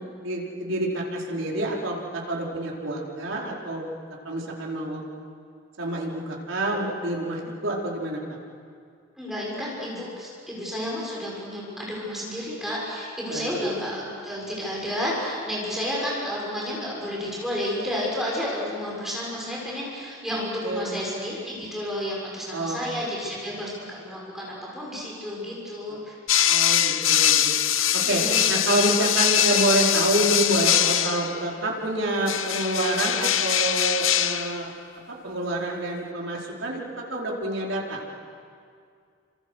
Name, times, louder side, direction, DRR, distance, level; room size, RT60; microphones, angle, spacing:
voice 1, 0.2-3.8 4.2-5.0 5.8-8.2 13.3-13.5 20.3-20.9 22.5-23.1 25.9-26.0 26.4-27.5 27.9-28.2 28.5-34.7 35.2-36.8 37.1-38.0, right 1 dB, 75° right, -2 dB, 4.7 m, -27 dB
voice 2, 9.2-26.1 28.0-28.6, equal, ahead, -5 dB, 6.6 m, -31 dB
sound 1, 26.3-31.4 32.3-34.6, left 10 dB, 80° left, 1.0 m, -22 dB
28.5 x 26.5 x 6.5 m, 2.3 s
head